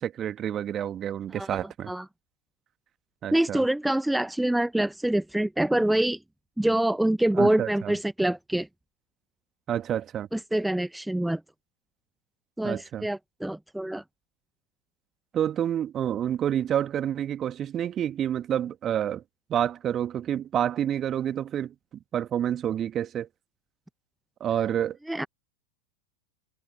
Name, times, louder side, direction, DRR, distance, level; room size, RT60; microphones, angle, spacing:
voice 1, 0.0-1.9 3.2-3.6 7.4-8.0 9.7-10.3 12.6-13.1 15.3-19.2 19.5-21.7 22.1-23.3 24.4-25.0, right 10 dB, 25° right, 2.0 m, -28 dB
voice 2, 3.3-6.2 6.6-8.7 10.3-11.4 12.6-14.0 25.1-25.3, right 1 dB, 5° right, 1.0 m, -25 dB
figure-of-eight pair, 90°, 0 cm